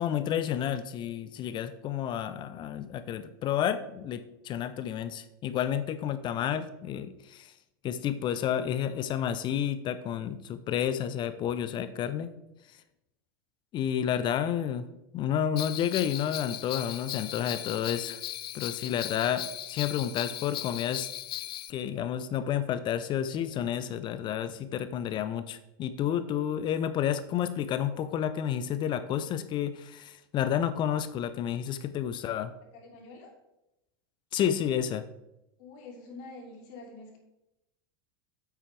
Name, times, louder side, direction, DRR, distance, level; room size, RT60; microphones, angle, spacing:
voice 1, 0.0-7.5 7.8-12.3 13.7-14.8 15.1-18.2 18.5-21.1 21.7-32.5 34.3-35.0, left 9 dB, 40° left, 13 dB, 0.6 m, -30 dB
Bell, 15.6-21.7, left 12 dB, 80° left, 0.4 m, -38 dB
voice 2, 18.8-19.2 32.7-33.3 35.6-37.2, left 3 dB, 60° left, 1 dB, 2.9 m, -47 dB
9.0 x 8.4 x 3.3 m, 0.90 s
hypercardioid pair, 90°, 12 cm